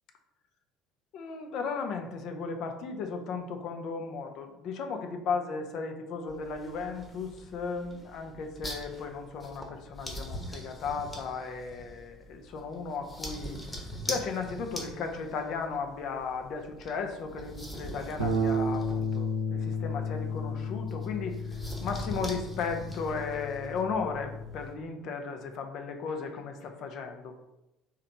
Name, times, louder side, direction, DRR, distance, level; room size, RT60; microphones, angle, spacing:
voice 1, 1.1-13.6 14.1-21.4 21.8-27.3, left 5 dB, 50° left, 5 dB, 0.6 m, -35 dB
sound 1, 6.3-24.7, equal, 15° left, 1.2 m, -43 dB
Bass guitar, 18.2-24.4, left 1 dB, 85° right, 0.7 m, -33 dB
4.1 x 3.1 x 4.0 m, 0.96 s
figure-of-eight pair, 60°, 0 cm